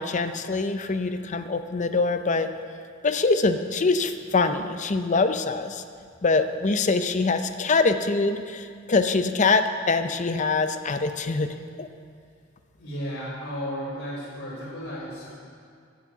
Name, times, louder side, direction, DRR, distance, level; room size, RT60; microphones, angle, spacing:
voice 1, 0.0-2.5 3.0-5.8 6.2-11.5 11.8-11.9, left 3 dB, 35° left, 9 dB, 0.6 m, -24 dB
voice 2, 12.8-15.3, equal, 90° left, -10 dB, 3.0 m, -34 dB
10.0 x 7.5 x 8.0 m, 2.2 s
head